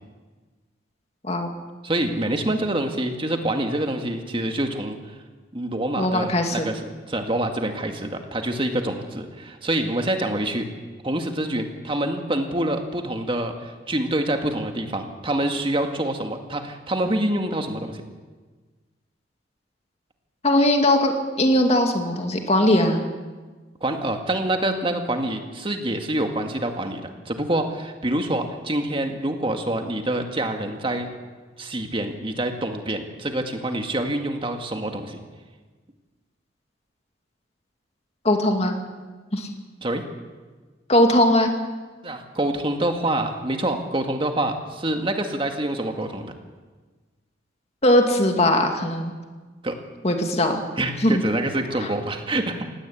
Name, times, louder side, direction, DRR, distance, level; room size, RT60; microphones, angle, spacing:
voice 1, 1.8-5.0 5.5-6.8 7.1-10.6 11.0-18.0 23.8-31.1 31.6-35.2 39.8-40.0 42.0-46.3 49.6-49.8 50.8-52.6, right 1 dB, 25° right, 5 dB, 1.9 m, -26 dB
voice 2, 6.0-6.7 20.4-23.0 38.2-38.8 39.3-39.5 40.9-41.5 47.8-49.1 50.0-50.6 51.0-51.2 51.8-51.9, left 1 dB, 35° left, 4 dB, 2.3 m, -19 dB
18.0 x 17.5 x 8.4 m, 1.4 s
head